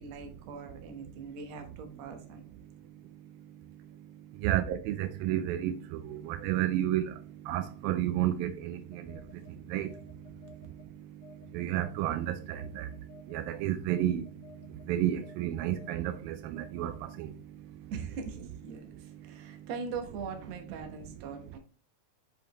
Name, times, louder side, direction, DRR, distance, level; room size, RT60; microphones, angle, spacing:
voice 1, 0.0-2.4 17.9-21.6, right 5 dB, 65° right, 1.8 m, -41 dB
voice 2, 4.4-7.2 7.5-9.2 9.7-9.9 11.5-12.9 13.3-14.3 14.9-17.3, right 12 dB, 85° right, 2.3 m, -31 dB
Telephone, 8.9-10.9 11.2-17.1, left 7 dB, 65° left, 2.4 m, -55 dB
7.1 x 5.0 x 3.0 m
omnidirectional pair, 4.2 m